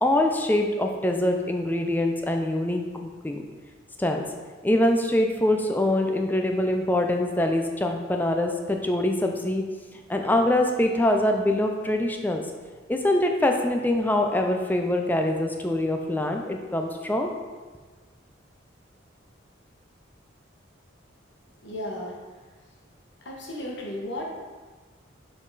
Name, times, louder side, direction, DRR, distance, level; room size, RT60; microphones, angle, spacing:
voice 1, 0.0-3.4 4.0-4.2 4.6-9.6 10.1-12.4 12.9-17.3, left 1 dB, 10° left, 3 dB, 0.4 m, -24 dB
voice 2, 21.6-22.7 23.2-24.3, left 1 dB, 65° left, -1 dB, 1.2 m, -35 dB
7.2 x 3.8 x 4.0 m, 1.4 s
head